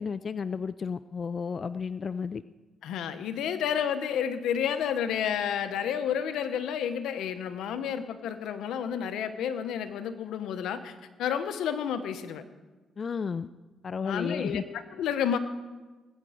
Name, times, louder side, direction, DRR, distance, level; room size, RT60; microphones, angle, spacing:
voice 1, 0.0-2.4 13.0-13.5 13.8-14.6, left 5 dB, 40° left, 14 dB, 0.3 m, -32 dB
voice 2, 2.8-12.4 14.0-15.4, left 8 dB, 80° left, 10 dB, 1.0 m, -31 dB
18.5 x 9.0 x 5.0 m, 1.2 s
cardioid pair, 90°, 0 cm